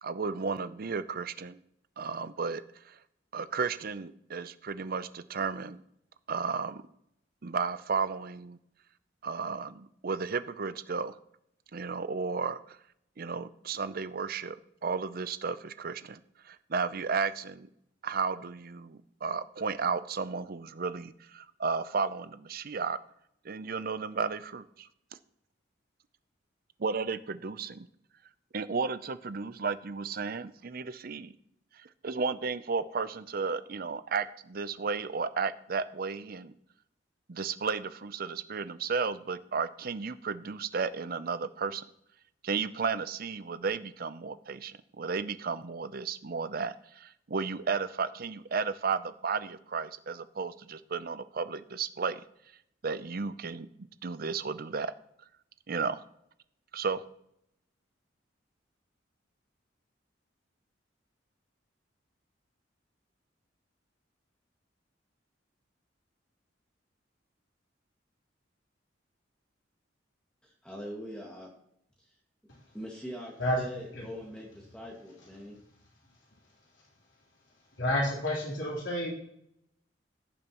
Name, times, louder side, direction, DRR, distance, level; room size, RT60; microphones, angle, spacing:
voice 1, 0.0-1.6 2.0-3.0 3.3-5.8 6.3-6.8 7.4-8.6 9.2-11.2 11.7-12.8 13.2-14.6 14.8-16.2 16.4-17.7 18.0-23.0 23.4-24.9 26.8-27.9 28.5-31.3 31.7-36.5 37.3-41.8 42.4-52.2 52.8-53.7 54.0-54.9 55.7-56.0 56.7-57.0, right 5 dB, 50° right, 13 dB, 0.6 m, -33 dB
voice 2, 70.4-71.6 72.0-72.2 72.7-75.6, equal, 5° left, -3 dB, 1.9 m, -43 dB
voice 3, 77.8-79.1, left 1 dB, 70° left, -4 dB, 3.7 m, -29 dB
17.0 x 7.2 x 3.0 m, 0.73 s
head